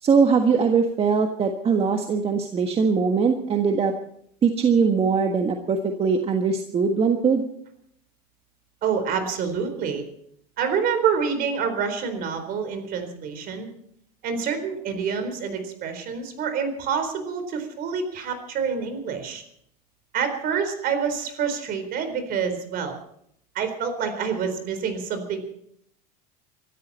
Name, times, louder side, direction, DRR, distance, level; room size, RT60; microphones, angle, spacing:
voice 1, 0.0-3.9 4.4-7.4, right 5 dB, 30° right, 5 dB, 1.5 m, -21 dB
voice 2, 8.8-10.1 10.6-13.7 14.2-19.4 20.1-23.0 23.5-25.4, right 6 dB, 50° right, 8 dB, 4.2 m, -27 dB
24.0 x 13.5 x 4.3 m, 0.70 s
supercardioid pair, 105°, 20 cm